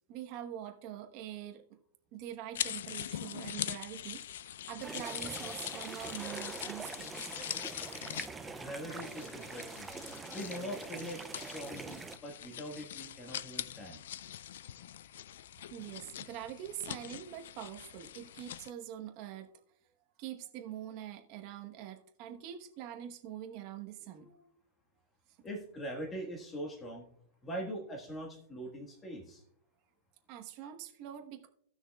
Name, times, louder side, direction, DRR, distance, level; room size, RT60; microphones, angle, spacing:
voice 1, 0.1-1.8 2.1-4.2 4.7-7.3 15.7-19.5 20.2-24.3 30.3-31.5, right 11 dB, 35° right, 5 dB, 1.0 m, -44 dB
sound 1, 2.5-18.7, left 11 dB, 70° left, 0.3 m, -43 dB
sound 2, 4.8-12.2, right 4 dB, 10° right, 0.4 m, -44 dB
voice 2, 8.5-9.9 10.3-14.0 24.1-24.4 25.4-27.1 27.4-29.4, equal, 15° left, 1 dB, 1.5 m, -42 dB
17.5 x 6.3 x 2.3 m, 0.68 s
supercardioid pair, 165°, 0 cm